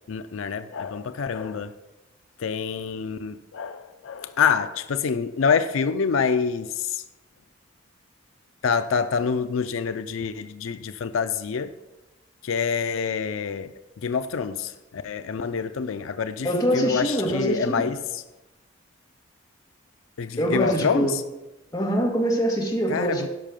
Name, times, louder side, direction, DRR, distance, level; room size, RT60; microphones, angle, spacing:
voice 1, 0.1-1.7 2.4-7.0 8.6-11.7 12.4-18.2 20.2-21.2 22.9-23.3, left 6 dB, 85° left, 10 dB, 0.5 m, -26 dB
voice 2, 16.4-17.9 20.4-21.1 21.7-23.3, right 1 dB, 15° left, -2 dB, 1.9 m, -24 dB
12.5 x 5.6 x 5.2 m, 1.0 s
head